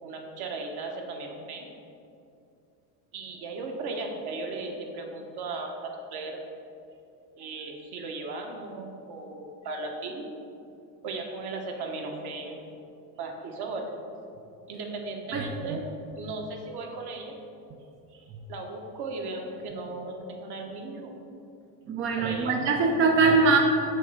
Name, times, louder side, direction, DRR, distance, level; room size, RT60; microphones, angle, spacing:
voice 1, 0.0-1.7 3.1-6.4 7.4-10.2 11.0-12.7 13.2-13.9 14.7-15.9 16.1-17.3 18.5-21.1 22.2-22.9, right 3 dB, 50° right, 2 dB, 1.2 m, -36 dB
voice 2, 21.9-23.6, right 4 dB, 25° right, 1 dB, 0.5 m, -22 dB
6.4 x 3.3 x 5.6 m, 2.6 s
hypercardioid pair, 85°, 50 cm